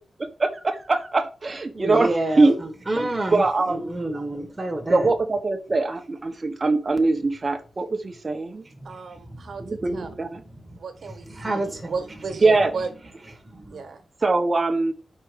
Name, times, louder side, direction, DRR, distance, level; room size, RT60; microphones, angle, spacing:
voice 1, 0.2-2.6 3.3-4.0 4.9-8.6 9.6-10.4 12.4-12.7 14.2-14.9, right 3 dB, 35° right, 1.0 m, -22 dB
voice 2, 1.7-2.5 2.9-5.1 8.8-8.9 9.3-9.7 11.3-11.9 13.5-13.8, right 2 dB, 15° right, 1.4 m, -29 dB
voice 3, 8.8-10.1 10.8-12.9 13.7-14.0, right 4 dB, 65° right, 1.4 m, -34 dB
5.2 x 4.8 x 5.1 m
cardioid pair, 85°, 0 cm